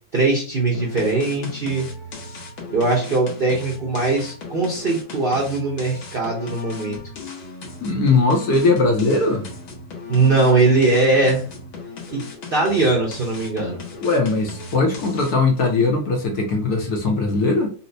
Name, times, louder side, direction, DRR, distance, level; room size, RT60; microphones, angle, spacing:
voice 1, 0.1-1.9 2.7-7.0 10.1-11.4 12.1-12.2 12.5-13.8, right 3 dB, 80° right, 0.5 m, -20 dB
sound 1, 0.7-15.5, left 3 dB, 85° left, 1.9 m, -37 dB
voice 2, 7.8-9.4 14.0-17.7, left 3 dB, 60° left, 1.1 m, -19 dB
4.2 x 2.1 x 2.6 m
omnidirectional pair, 2.2 m